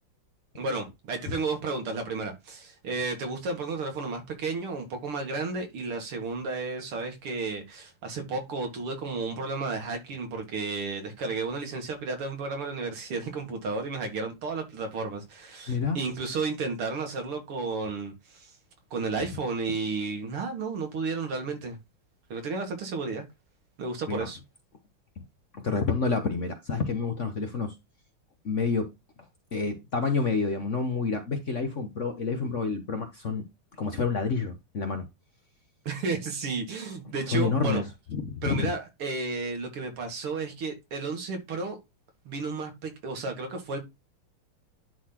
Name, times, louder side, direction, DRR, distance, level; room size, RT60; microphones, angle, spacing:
voice 1, 0.5-18.5 18.9-21.8 22.3-23.2 23.8-24.4 35.9-37.8 38.4-41.8 42.3-43.8, right 3 dB, 85° right, 2.9 m, -32 dB
voice 2, 15.7-16.0 24.1-24.3 25.5-27.7 28.4-28.9 29.5-33.4 33.8-35.0 37.3-37.8 38.1-38.7, left 4 dB, 50° left, 1.0 m, -28 dB
10.5 x 4.0 x 2.9 m
omnidirectional pair, 2.4 m